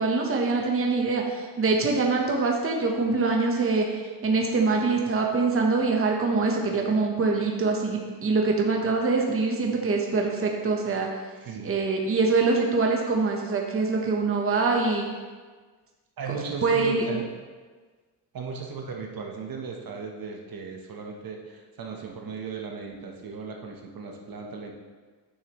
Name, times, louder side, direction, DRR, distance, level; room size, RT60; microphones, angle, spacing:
voice 1, 0.0-11.1 11.6-15.1 16.6-17.1, right 3 dB, 30° right, 1 dB, 1.0 m, -24 dB
voice 2, 11.4-11.7 16.2-17.3 18.3-24.7, right 5 dB, 55° right, 1 dB, 1.1 m, -36 dB
9.7 x 6.3 x 3.0 m, 1.4 s
cardioid pair, 120°, 43 cm